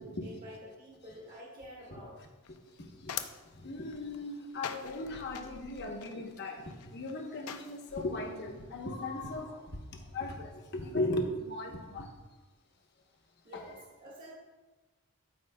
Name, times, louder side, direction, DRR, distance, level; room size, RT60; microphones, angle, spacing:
voice 1, 0.0-2.3 13.4-14.3, equal, 40° right, -6 dB, 1.4 m, -49 dB
sound 1, 2.4-8.1, left 8 dB, 85° left, 0.5 m, -45 dB
voice 2, 2.8-3.2 3.5-12.2 13.5-13.6, left 2 dB, 50° left, 2 dB, 0.9 m, -37 dB
13.0 x 4.5 x 2.2 m, 1.2 s
head